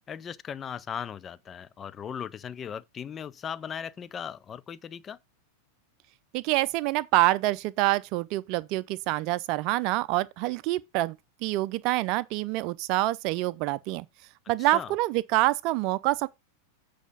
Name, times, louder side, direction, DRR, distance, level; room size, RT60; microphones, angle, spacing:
voice 1, 0.1-5.2 14.7-15.0, left 8 dB, 25° left, 0.6 m, -38 dB
voice 2, 6.3-11.2 11.4-14.1 14.5-16.3, right 18 dB, 40° right, 0.6 m, -26 dB
8.2 x 5.0 x 5.3 m
figure-of-eight pair, 90°, 0 cm